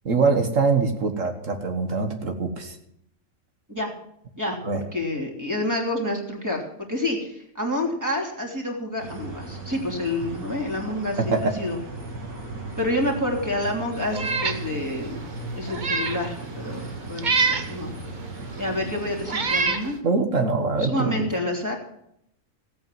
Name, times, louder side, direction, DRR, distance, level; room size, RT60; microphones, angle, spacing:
voice 1, 0.1-2.8 4.6-4.8 11.3-11.5 20.0-21.2, right 4 dB, 65° right, 4 dB, 1.8 m, -23 dB
voice 2, 4.9-11.8 12.8-15.2 15.6-17.9 18.6-20.0 20.8-21.7, left 1 dB, 10° right, -1 dB, 3.1 m, -28 dB
sound 1, 9.0-19.7, right 3 dB, 90° right, 2.9 m, -37 dB
Meow, 14.1-14.6 15.1-15.2 15.7-16.2 17.2-17.7 18.6-18.7 19.3-19.9, right 4 dB, 35° right, 1.1 m, -24 dB
16.0 x 8.7 x 7.5 m, 0.74 s
omnidirectional pair, 1.4 m